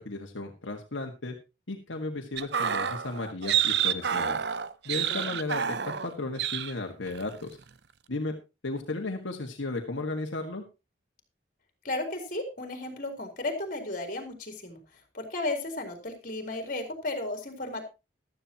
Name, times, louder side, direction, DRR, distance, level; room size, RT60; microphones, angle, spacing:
voice 1, 0.0-1.3 1.7-4.4 4.9-7.5 8.1-8.3 8.6-10.7, left 2 dB, 80° left, 2 dB, 1.8 m, -34 dB
sound 1, 2.4-6.1 6.4-6.7 7.1-7.3, right 8 dB, 60° right, 0.6 m, -29 dB
voice 2, 11.8-14.8 15.1-17.9, left 2 dB, 45° left, 4 dB, 3.7 m, -34 dB
15.0 x 12.5 x 3.0 m, 0.28 s
head